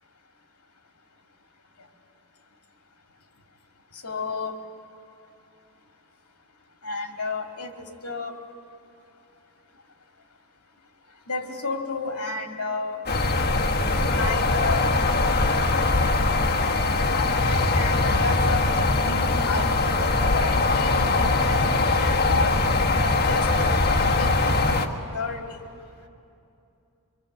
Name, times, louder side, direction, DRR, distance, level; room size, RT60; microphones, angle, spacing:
voice 1, 4.0-4.5 6.8-7.7 8.0-8.3 11.3-13.0 14.0-14.8 17.1-20.1 20.3-22.6 23.0-23.5 24.0-24.8 25.1-25.4, left 3 dB, 80° left, 4 dB, 2.4 m, -31 dB
sound 1, 13.1-24.9, left 3 dB, 45° left, 1.5 m, -22 dB
25.0 x 22.5 x 8.0 m, 2.6 s
head